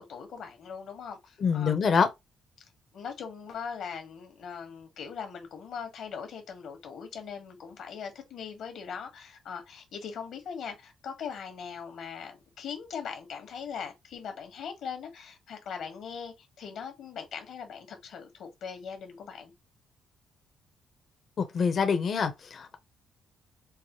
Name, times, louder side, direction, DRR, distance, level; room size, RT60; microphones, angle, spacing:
voice 1, 0.0-1.7 2.9-19.5, left 6 dB, 70° left, 1.5 m, -40 dB
voice 2, 1.4-2.1 21.4-22.8, left 6 dB, 50° left, 0.8 m, -25 dB
4.6 x 2.1 x 3.0 m
cardioid pair, 90°, 0 cm